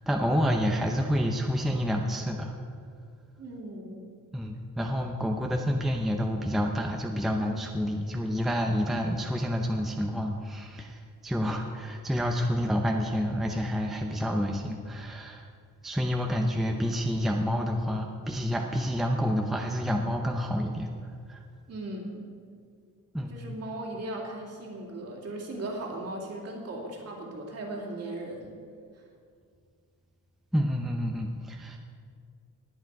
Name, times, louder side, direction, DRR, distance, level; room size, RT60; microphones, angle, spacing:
voice 1, 0.1-2.6 4.3-15.4 15.8-20.9 21.3-21.4 23.1-23.4 30.5-31.8, equal, ahead, 2 dB, 0.6 m, -28 dB
voice 2, 3.4-4.1 21.7-22.2 23.3-28.6, right 1 dB, 45° right, -1 dB, 2.6 m, -37 dB
20.0 x 8.4 x 4.7 m, 2.2 s
wide cardioid pair, 160°, 33 cm